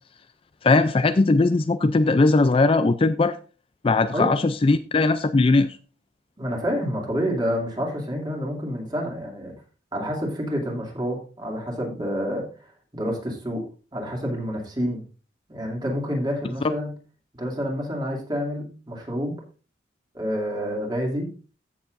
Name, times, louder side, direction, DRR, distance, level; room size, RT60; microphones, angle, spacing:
voice 1, 0.6-3.4 3.8-5.8, left 3 dB, 30° left, 0.4 m, -19 dB
voice 2, 6.4-9.5 9.9-13.7 13.9-15.0 15.5-16.9 17.4-19.4 20.1-21.3, equal, 25° right, 2.6 m, -28 dB
15.0 x 7.2 x 2.6 m
head